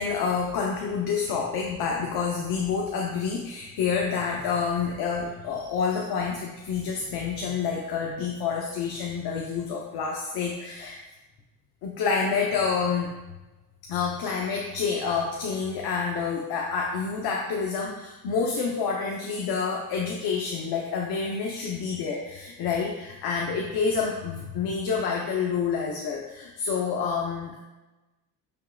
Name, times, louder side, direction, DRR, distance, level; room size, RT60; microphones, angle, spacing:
voice 1, 0.0-11.0 11.8-13.1 13.9-27.6, left 5 dB, 75° left, -1 dB, 0.7 m, -28 dB
5.7 x 3.5 x 2.3 m, 1.1 s
cardioid pair, 90°, 38 cm